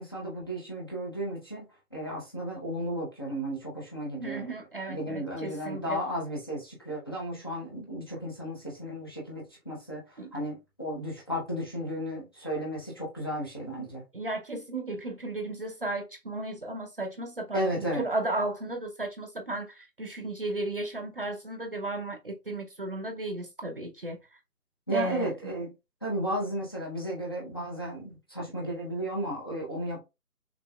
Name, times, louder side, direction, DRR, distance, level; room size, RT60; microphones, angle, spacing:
voice 1, 0.0-4.5 4.9-14.0 17.5-18.0 24.9-25.7 26.0-30.0, right 1 dB, 15° left, 0.7 m, -34 dB
voice 2, 4.2-6.0 10.2-10.3 14.1-24.4 24.9-25.3, right 2 dB, 35° right, 0.6 m, -34 dB
6.0 x 3.3 x 2.2 m
figure-of-eight pair, 145°, 46 cm